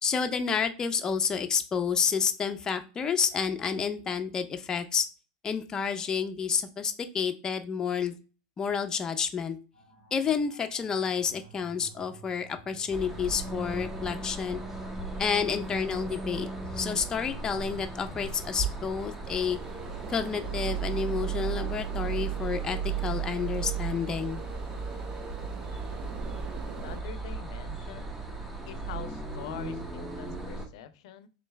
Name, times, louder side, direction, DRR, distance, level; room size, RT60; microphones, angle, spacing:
voice 1, 0.0-5.1 5.4-8.1 8.6-9.6 10.1-14.6 15.2-19.6 20.1-24.4, left 6 dB, 20° left, 6 dB, 0.5 m, -30 dB
sound 1, 9.7-23.8, right 3 dB, 75° right, 1.7 m, -55 dB
sound 2, 12.9-30.7, right 5 dB, 10° right, 0.8 m, -35 dB
sound 3, 19.2-27.0, right 8 dB, 35° right, 0.4 m, -44 dB
voice 2, 26.8-28.1 28.7-31.3, left 10 dB, 70° left, 12 dB, 0.5 m, -44 dB
3.8 x 3.1 x 3.3 m, 0.35 s
supercardioid pair, 130°, 3 cm